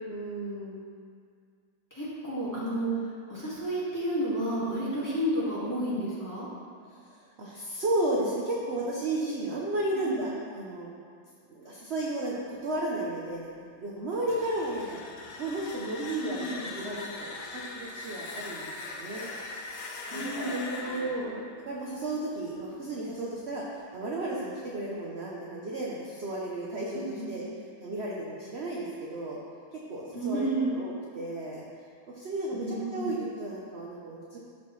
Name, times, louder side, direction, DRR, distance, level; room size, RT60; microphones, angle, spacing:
voice 1, 0.1-0.8 7.0-10.9 11.5-15.0 15.4-19.3 20.1-21.3 21.7-27.4 27.8-29.4 29.7-31.6 32.1-34.4, right 1 dB, 55° right, -4 dB, 0.7 m, -34 dB
voice 2, 1.9-2.9 3.3-6.5 9.9-10.2 16.2-16.6 20.1-21.3 26.9-27.4 30.1-30.7 32.5-33.1, right 1 dB, 10° left, -10 dB, 1.7 m, -31 dB
sound 1, 14.1-22.9, left 3 dB, 60° left, 0.9 m, -41 dB
13.0 x 4.3 x 3.2 m, 2.2 s
omnidirectional pair, 2.1 m